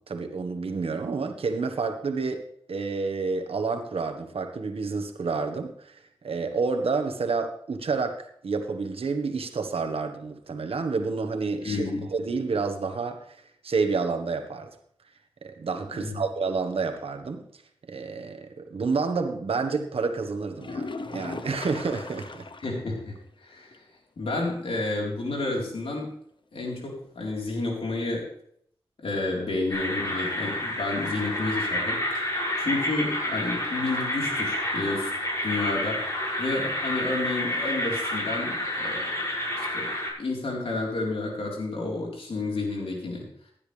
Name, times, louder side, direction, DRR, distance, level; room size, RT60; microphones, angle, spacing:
voice 1, 0.1-5.9 6.2-14.7 15.4-17.4 17.9-22.5, right 4 dB, 85° right, 6 dB, 1.5 m, -29 dB
voice 2, 11.6-12.1 15.9-16.2 22.6-23.2 23.4-23.8 24.2-26.1 26.5-28.3 29.0-32.3 32.6-35.1 35.4-36.0 36.4-39.2 39.5-43.3, left 2 dB, 85° left, -1 dB, 4.2 m, -30 dB
sound 1, 20.6-22.8 23.2-23.3 23.7-23.8 27.6-27.7, left 3 dB, 55° left, 1.0 m, -37 dB
sound 2, 29.7-40.1, left 1 dB, 30° left, 6.6 m, -29 dB
16.0 x 10.5 x 3.4 m, 0.66 s
cardioid pair, 55°, 10 cm